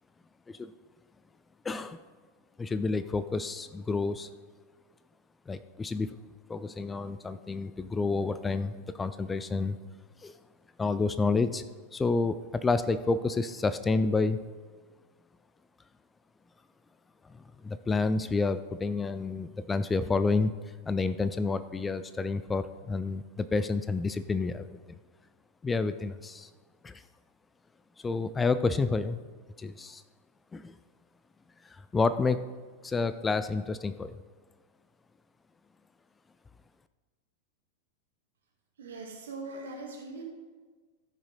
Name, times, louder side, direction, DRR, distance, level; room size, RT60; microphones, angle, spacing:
voice 1, 1.6-2.0 2.6-4.3 5.5-6.2 6.5-9.8 10.2-10.3 10.8-11.6 11.9-14.4 17.6-20.5 20.9-24.8 25.6-26.5 26.8-27.0 28.0-29.2 29.6-30.0 30.5-30.8 31.6-32.5 32.8-34.2, left 4 dB, 15° left, 13 dB, 0.3 m, -29 dB
voice 2, 38.8-40.2, right 3 dB, 65° right, 0 dB, 2.2 m, -41 dB
14.5 x 5.7 x 4.1 m, 1.4 s
figure-of-eight pair, 90°, 0 cm